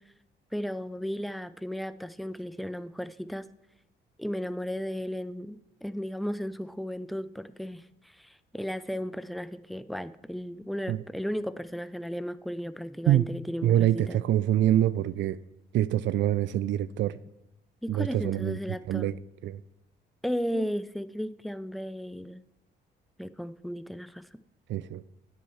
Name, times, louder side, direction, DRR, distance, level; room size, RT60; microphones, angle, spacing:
voice 1, 0.5-3.5 4.2-14.2 17.8-19.1 20.2-22.4 23.2-24.3, equal, ahead, 0.4 m, -35 dB
voice 2, 13.6-15.4 15.7-17.2 17.9-19.2 19.4-19.6 20.5-20.7 24.7-25.0, right 12 dB, 70° right, 0.4 m, -25 dB
9.8 x 6.3 x 7.0 m
cardioid pair, 90°, 20 cm